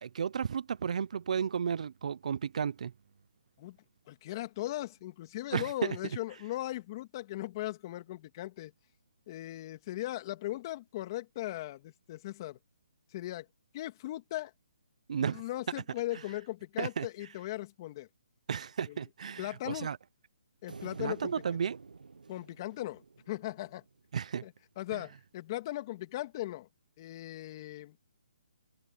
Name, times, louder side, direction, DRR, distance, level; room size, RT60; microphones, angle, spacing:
voice 1, 0.0-2.9 5.5-6.0 15.1-15.4 16.8-17.1 18.5-20.0 21.0-21.8 24.1-24.4 24.9-25.0, right 7 dB, 60° right, 0.7 m, -33 dB
voice 2, 4.1-8.7 9.3-12.6 13.1-13.5 13.7-14.5 15.2-18.1 18.9-19.0 19.4-19.9 20.6-21.3 22.3-23.8 24.4-26.7 27.0-28.0, left 16 dB, 30° left, 2.4 m, -38 dB
sound 1, 20.7-24.1, right 4 dB, 90° right, 1.2 m, -49 dB
hypercardioid pair, 160°, 4 cm